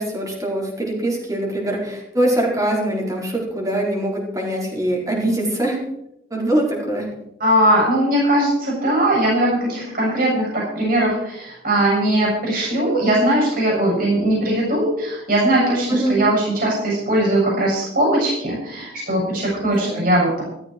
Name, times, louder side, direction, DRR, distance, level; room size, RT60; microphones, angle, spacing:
voice 1, 0.0-5.8 6.3-7.1 15.9-16.2 19.7-20.0, right 1 dB, 20° right, -2 dB, 4.6 m, -23 dB
voice 2, 7.4-20.4, right 1 dB, 55° right, -3 dB, 7.2 m, -19 dB
15.0 x 14.0 x 4.6 m, 0.81 s
head